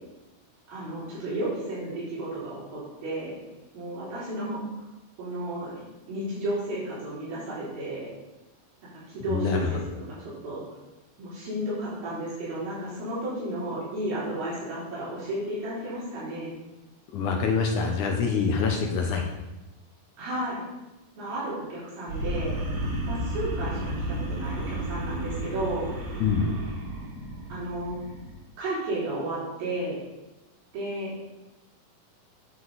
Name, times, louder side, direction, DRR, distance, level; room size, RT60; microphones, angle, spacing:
voice 1, 0.7-3.4 3.7-4.7 5.2-5.8 6.1-8.1 9.1-10.6 11.2-16.5 20.2-20.6 21.2-22.6 23.0-25.9 27.5-28.0 28.6-30.0 30.7-31.1, right 1 dB, 80° right, -9 dB, 5.5 m, -33 dB
voice 2, 9.3-9.7 17.1-19.2 26.2-26.5, left 5 dB, 70° left, 2 dB, 2.3 m, -25 dB
sound 1, 22.1-28.4, right 1 dB, 65° right, 1.0 m, -32 dB
9.5 x 8.1 x 4.1 m, 1.0 s
omnidirectional pair, 4.0 m